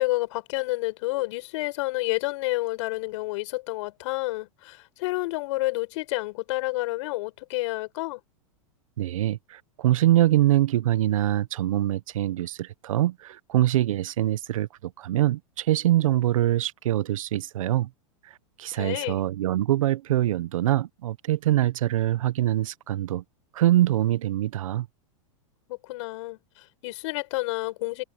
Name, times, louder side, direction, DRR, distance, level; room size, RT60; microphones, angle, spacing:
voice 1, 0.0-8.2 18.8-19.2 25.7-28.0, left 20 dB, 60° left, 6.3 m, -29 dB
voice 2, 9.0-17.9 18.6-23.2 23.5-24.9, right 14 dB, 75° right, 1.2 m, -24 dB
hypercardioid pair, 115°, 17 cm